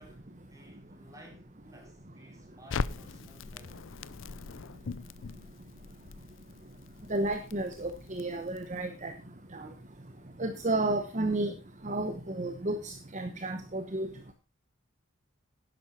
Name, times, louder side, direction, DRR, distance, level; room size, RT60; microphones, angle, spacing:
voice 1, 0.0-3.8, equal, 15° right, 4.6 m, -56 dB
Crackle, 2.7-8.8, left 4 dB, 75° left, 0.6 m, -40 dB
voice 2, 7.1-9.1 9.5-9.7 10.4-11.5 11.8-14.1, right 2 dB, 35° right, 1.1 m, -32 dB
11.5 x 10.5 x 4.3 m
head